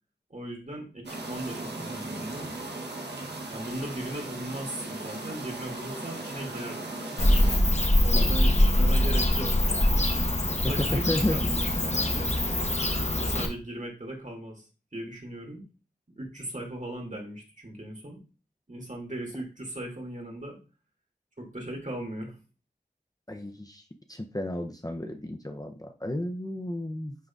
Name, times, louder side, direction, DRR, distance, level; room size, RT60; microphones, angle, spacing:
voice 1, 0.3-2.5 3.5-7.0 8.0-12.3 13.2-14.6 14.9-15.6 16.2-18.2 18.7-20.6 21.4-22.4, right 1 dB, 50° right, 0 dB, 2.4 m, -38 dB
sound 1, 1.0-7.6, right 2 dB, 90° right, 1.1 m, -37 dB
Bird / Cricket, 7.2-13.5, left 1 dB, 40° left, 1.1 m, -23 dB
voice 2, 8.2-8.7 10.6-11.4 23.3-23.8 24.1-27.2, left 1 dB, 20° left, 4 dB, 0.6 m, -32 dB
11.0 x 3.8 x 2.4 m, 0.33 s
wide cardioid pair, 45°, 17 cm